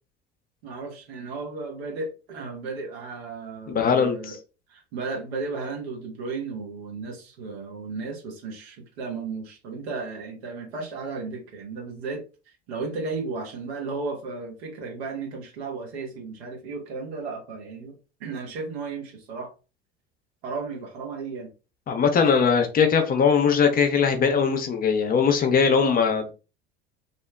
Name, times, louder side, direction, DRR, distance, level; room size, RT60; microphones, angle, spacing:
voice 1, 0.6-4.4 4.7-12.2 12.7-17.9 18.2-19.5 20.4-21.5, right 4 dB, 70° right, 1.0 m, -34 dB
voice 2, 3.7-4.4 21.9-26.3, left 6 dB, 30° left, 0.5 m, -20 dB
2.7 x 2.1 x 2.2 m
hypercardioid pair, 70°, 32 cm